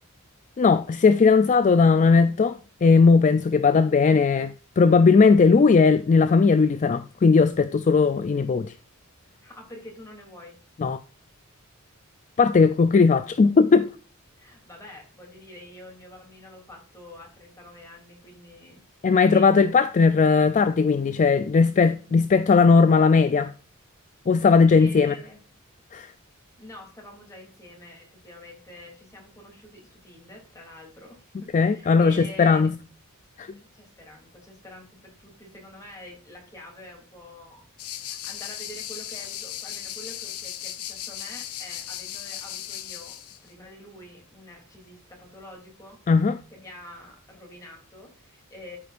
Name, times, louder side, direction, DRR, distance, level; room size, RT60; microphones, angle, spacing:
voice 1, 0.6-8.7 10.8-11.0 12.4-13.9 19.0-23.5 24.3-25.1 25.9-26.1 31.5-32.7 33.4-33.5 46.1-46.4, left 4 dB, 35° left, 0.4 m, -18 dB
voice 2, 9.4-10.6 14.4-18.8 19.1-19.7 24.7-25.4 26.6-32.7 33.5-46.0 46.5-48.8, left 1 dB, 15° left, 2.8 m, -46 dB
sound 1, 37.8-43.4, left 11 dB, 90° left, 0.8 m, -36 dB
13.5 x 5.1 x 2.5 m
head